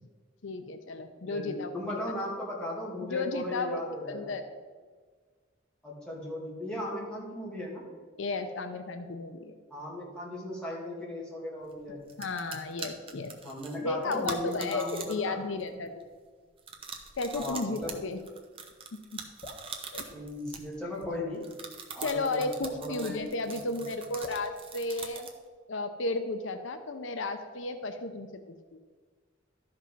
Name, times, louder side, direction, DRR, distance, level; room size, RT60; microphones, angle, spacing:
voice 1, 0.4-1.8 3.1-3.8 4.1-4.4 8.2-9.5 12.2-13.3 13.8-16.0 17.2-18.2 19.1-19.2 19.9-20.1 22.0-25.3 25.7-28.4 28.7-28.8, left 3 dB, 75° left, 8 dB, 0.6 m, -33 dB
voice 2, 1.1-4.3 5.8-7.8 9.7-12.0 13.1-15.4 15.7-15.8 17.4-18.0 20.1-21.4 21.9-23.8, left 1 dB, 5° left, -5 dB, 2.3 m, -37 dB
sound 1, 11.7-11.8 12.1-15.3 15.6-16.0 16.6-21.0 21.4-25.4, right 5 dB, 30° right, 0.9 m, -43 dB
Drip, 17.8-18.1 19.4-19.7 21.0-21.3 22.6-22.9 24.2-24.5, left 1 dB, 35° left, 1.3 m, -45 dB
12.0 x 5.3 x 5.4 m, 1.5 s
head